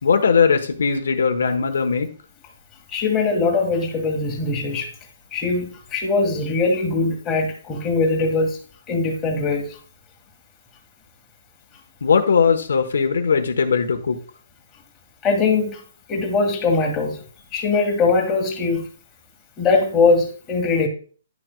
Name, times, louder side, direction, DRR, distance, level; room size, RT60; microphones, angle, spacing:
voice 1, 0.0-2.1 12.0-14.2, left 5 dB, 80° left, 5 dB, 1.1 m, -19 dB
voice 2, 2.9-4.9 5.3-8.6 8.9-9.8 15.2-15.8 16.1-17.2 17.5-18.9 19.6-20.9, left 3 dB, 15° left, -1 dB, 1.7 m, -21 dB
10.5 x 6.2 x 2.3 m, 0.41 s
hypercardioid pair, 165°, 0 cm